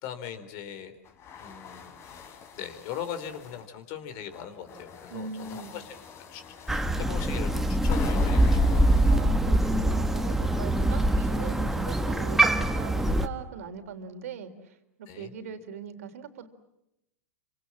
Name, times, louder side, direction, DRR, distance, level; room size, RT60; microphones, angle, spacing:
voice 1, 0.0-1.0 1.4-1.9 2.5-5.9 6.3-8.9 15.1-15.3, left 9 dB, 50° left, 9 dB, 3.9 m, -40 dB
sound 1, 1.0-3.7 4.3-9.1, left 6 dB, 35° left, 4.1 m, -43 dB
voice 2, 5.1-5.7 9.1-16.5, right 6 dB, 75° right, 7 dB, 3.6 m, -40 dB
Crow, 6.7-13.3, right 1 dB, 5° right, 1.7 m, -24 dB
28.5 x 26.0 x 7.4 m, 0.85 s
hypercardioid pair, 120°, 8 cm